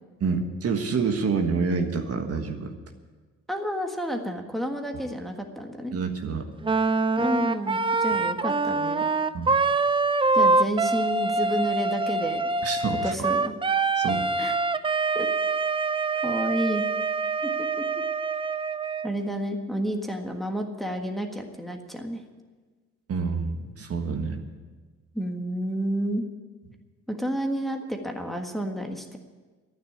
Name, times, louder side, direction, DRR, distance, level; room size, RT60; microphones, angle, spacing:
voice 1, 0.2-2.7 5.9-6.5 9.3-9.6 12.6-13.1 14.0-14.3 23.1-24.4, right 5 dB, 50° right, 5 dB, 1.5 m, -27 dB
voice 2, 3.5-5.9 7.2-9.0 10.3-12.4 13.0-13.5 14.4-14.6 15.1-15.3 16.2-16.8 17.4-17.8 19.0-22.2 25.1-26.3 27.1-29.2, equal, ahead, 3 dB, 1.6 m, -30 dB
Wind instrument woodwind instrument, 6.6-19.1, right 3 dB, 15° right, 0.5 m, -25 dB
11.5 x 9.5 x 9.5 m, 1.4 s
cardioid pair, 90°, 30 cm